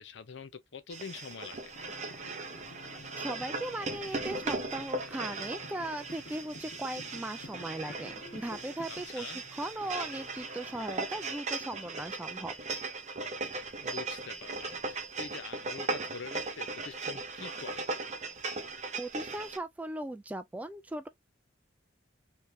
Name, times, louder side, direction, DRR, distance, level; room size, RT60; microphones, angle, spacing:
voice 1, 0.0-1.8 8.9-9.4 13.8-18.0, left 5 dB, 65° left, 0.6 m, -45 dB
sound 1, 0.9-19.6, right 3 dB, 40° right, 0.7 m, -38 dB
sound 2, 1.7-11.4, left 2 dB, 90° left, 1.5 m, -51 dB
voice 2, 3.2-12.5 19.0-21.1, right 1 dB, 10° right, 0.3 m, -38 dB
3.3 x 3.2 x 2.7 m
head